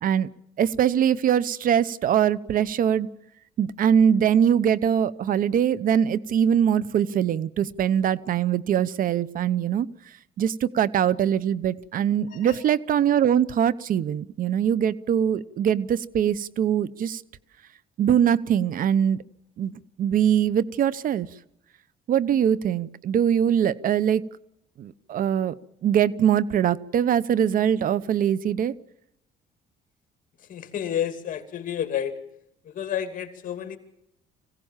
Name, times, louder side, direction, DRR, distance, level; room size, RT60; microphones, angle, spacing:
voice 1, 0.6-3.1 3.6-9.9 10.4-17.2 18.0-19.2 19.6-19.7 20.0-21.3 22.1-24.2 24.8-25.6 25.8-28.7, right 9 dB, 55° right, 18 dB, 0.9 m, -22 dB
voice 2, 30.5-32.1 32.7-33.8, left 9 dB, 50° left, 8 dB, 2.7 m, -30 dB
25.0 x 17.0 x 7.4 m, 0.84 s
cardioid pair, 110°, 17 cm